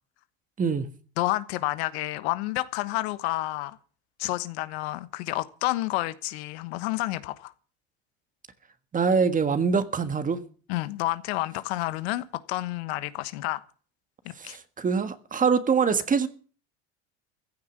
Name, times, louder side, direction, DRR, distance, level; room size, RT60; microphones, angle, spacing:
voice 1, 1.2-3.8 4.2-7.5 10.7-13.6 14.4-14.6, left 18 dB, 75° left, 1.2 m, -29 dB
voice 2, 8.9-10.4 14.4-16.3, right 5 dB, 25° right, 1.6 m, -24 dB
15.0 x 7.2 x 9.2 m
supercardioid pair, 100°, 33 cm